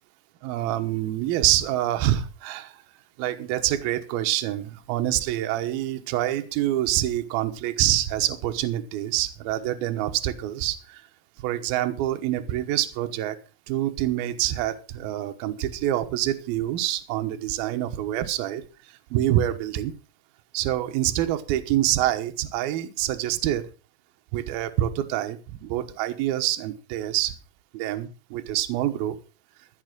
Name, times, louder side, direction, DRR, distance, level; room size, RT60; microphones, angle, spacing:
voice 1, 0.4-2.8 3.2-11.0 11.4-13.4 13.7-18.6 18.9-19.9 20.5-23.7 24.3-27.3 27.7-29.2, right 13 dB, 70° right, 7 dB, 2.5 m, -26 dB
14.5 x 6.6 x 6.2 m, 0.34 s
omnidirectional pair, 5.6 m